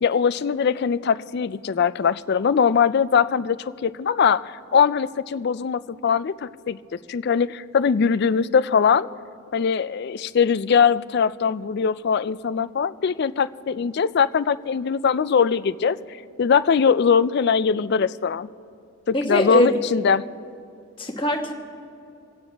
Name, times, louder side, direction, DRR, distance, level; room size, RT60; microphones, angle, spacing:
voice 1, 0.0-6.8 7.1-9.1 9.5-16.0 16.4-18.5 19.1-20.3, left 6 dB, 50° left, 16 dB, 0.3 m, -21 dB
voice 2, 19.1-19.8 21.0-21.5, equal, 20° left, 2 dB, 1.2 m, -22 dB
27.5 x 9.4 x 3.4 m, 2.5 s
head